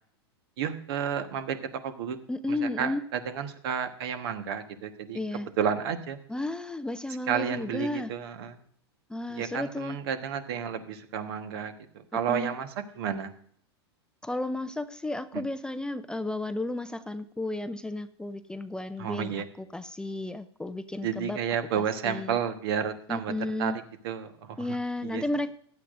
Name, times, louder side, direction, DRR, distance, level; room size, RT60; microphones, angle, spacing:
voice 1, 0.6-1.6 1.8-2.2 2.5-5.2 5.6-6.2 7.3-8.6 9.3-13.3 15.3-15.4 19.0-19.5 21.0-24.8 25.0-25.2, right 7 dB, 65° right, 8 dB, 1.3 m, -31 dB
voice 2, 2.3-3.0 5.1-5.5 6.3-8.1 9.1-10.0 12.3-12.5 14.2-21.4 22.0-22.4 23.1-23.8 24.6-25.6, left 2 dB, 5° left, 11 dB, 0.5 m, -33 dB
15.5 x 10.5 x 2.6 m, 0.63 s
hypercardioid pair, 100°, 14 cm